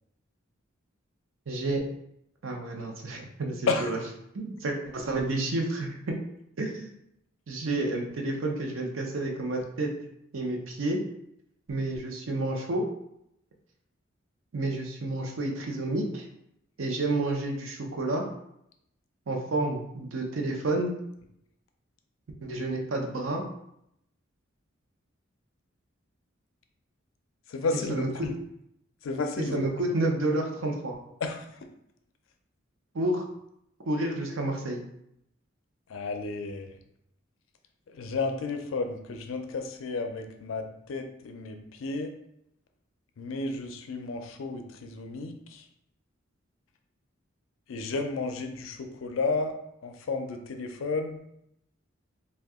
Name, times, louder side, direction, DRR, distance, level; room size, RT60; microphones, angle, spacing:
voice 1, 1.5-1.8 2.4-4.0 4.3-6.2 6.6-6.9 7.5-9.9 10.3-11.0 11.7-12.8 14.5-16.3 16.8-18.2 19.3-20.9 22.4-23.4 27.9-28.3 29.5-31.0 32.9-33.2 33.9-34.8, right 2 dB, 75° right, 1 dB, 0.6 m, -30 dB
voice 2, 27.5-28.3 29.0-29.7 31.2-31.5 35.9-36.8 37.9-42.1 43.2-45.6 47.7-49.5 49.8-51.2, left 3 dB, 80° left, 5 dB, 0.4 m, -32 dB
2.7 x 2.2 x 3.5 m, 0.78 s
head